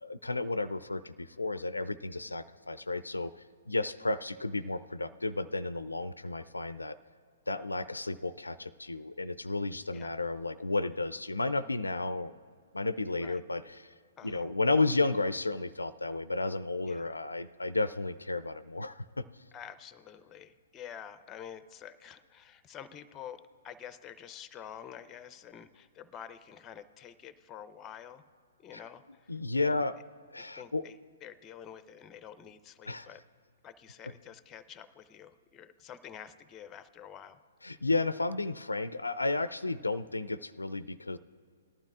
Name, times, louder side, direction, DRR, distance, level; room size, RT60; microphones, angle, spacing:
voice 1, 0.0-3.3 3.7-7.0 7.5-12.3 12.7-13.9 14.2-19.2 29.3-30.0 30.3-30.8 32.9-33.1 37.6-41.2, left 3 dB, 90° left, 15 dB, 0.3 m, -32 dB
voice 2, 14.2-14.5 16.8-17.2 19.5-28.2 28.6-29.3 29.6-29.8 30.4-33.2 33.6-37.4, left 9 dB, 20° left, 13 dB, 0.5 m, -48 dB
18.5 x 12.0 x 2.4 m, 2.2 s
figure-of-eight pair, 120°, 0 cm